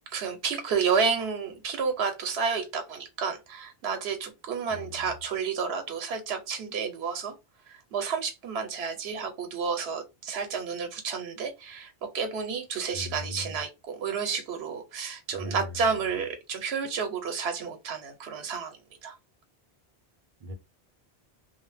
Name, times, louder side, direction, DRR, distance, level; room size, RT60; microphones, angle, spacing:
voice 1, 0.1-7.3 7.7-19.2, right 5 dB, 85° right, 0.9 m, -31 dB
voice 2, 4.7-5.1 12.9-13.6 15.3-16.0 20.4-20.5, left 1 dB, 45° right, 0.5 m, -39 dB
2.5 x 2.0 x 3.2 m
omnidirectional pair, 1.1 m